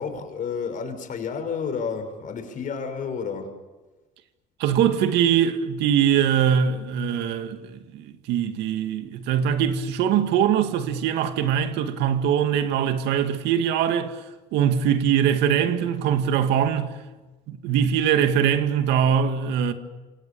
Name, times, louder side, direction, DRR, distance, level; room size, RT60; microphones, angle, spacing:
voice 1, 0.0-3.5, left 6 dB, 50° left, 6.0 m, -30 dB
voice 2, 4.6-14.2 14.5-16.9 17.5-19.7, right 8 dB, 90° right, 2.2 m, -22 dB
30.0 x 27.0 x 7.1 m
cardioid pair, 110°, 17 cm